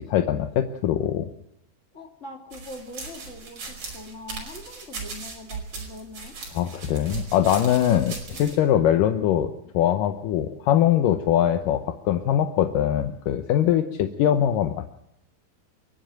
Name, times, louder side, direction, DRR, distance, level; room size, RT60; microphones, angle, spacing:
voice 1, 0.1-1.3 6.5-14.9, left 10 dB, 70° left, 7 dB, 2.2 m, -22 dB
voice 2, 1.9-6.3 8.0-8.1, left 2 dB, 20° left, 1 dB, 2.7 m, -42 dB
sound 1, 2.5-8.6, right 4 dB, 45° right, 6.2 m, -38 dB
29.5 x 10.0 x 9.1 m, 0.81 s
omnidirectional pair, 4.6 m